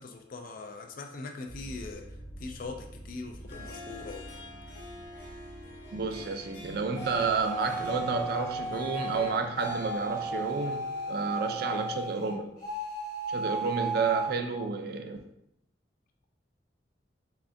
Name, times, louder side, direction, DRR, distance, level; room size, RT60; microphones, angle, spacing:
voice 1, 0.0-2.0 2.4-4.3, left 3 dB, 50° left, 3 dB, 0.3 m, -41 dB
sound 1, 1.5-12.3, right 1 dB, 85° right, 1.0 m, -50 dB
Harp, 3.3-12.0, left 2 dB, 80° left, 1.0 m, -47 dB
voice 2, 5.9-12.5 13.3-15.2, right 4 dB, 55° right, 5 dB, 0.4 m, -31 dB
sound 2, 6.9-12.3 12.6-14.3, right 2 dB, 20° left, 0.9 m, -34 dB
3.6 x 3.3 x 2.5 m, 0.79 s
head